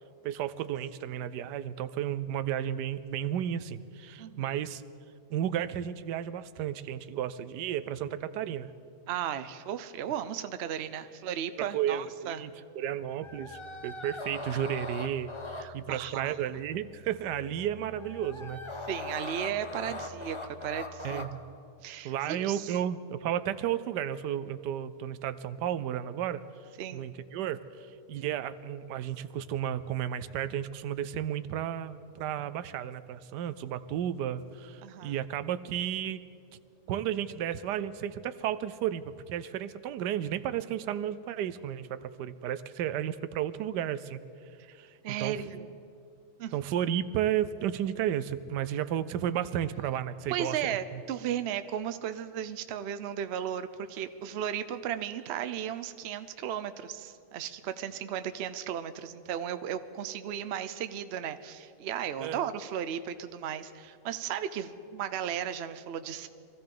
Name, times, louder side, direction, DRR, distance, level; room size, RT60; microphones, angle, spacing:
voice 1, 0.2-4.8 5.3-8.7 11.6-18.6 21.0-21.4 22.0-26.4 26.9-36.2 36.9-44.2 44.7-44.9 45.2-45.4 46.5-51.0 62.2-62.5, right 10 dB, 85° right, 14 dB, 1.2 m, -33 dB
voice 2, 4.2-4.5 9.1-12.4 15.6-16.3 18.9-21.2 21.8-22.7 26.8-27.1 34.8-35.2 45.0-45.7 46.4-46.5 50.3-66.3, right 9 dB, 60° right, 11 dB, 0.7 m, -35 dB
sound 1, 13.2-21.5, left 2 dB, 30° left, 0.6 m, -41 dB
24.0 x 15.0 x 3.8 m, 2.5 s
omnidirectional pair, 1.8 m